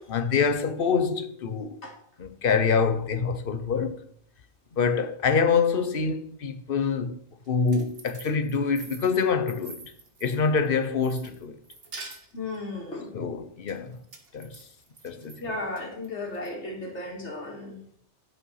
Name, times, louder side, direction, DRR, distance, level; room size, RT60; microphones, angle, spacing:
voice 1, 0.1-1.8 2.2-4.0 4.7-7.2 7.5-9.9 10.2-11.6 13.1-14.0 14.3-14.6 15.0-15.4, left 5 dB, 55° left, 1.0 m, -25 dB
sound 1, 7.5-10.7 11.0-12.6 13.7-15.4 15.8-16.5, right 3 dB, 60° right, 1.8 m, -45 dB
voice 2, 12.3-13.2 15.4-18.0, left 2 dB, 75° left, 2.5 m, -35 dB
11.0 x 5.5 x 5.6 m
omnidirectional pair, 1.2 m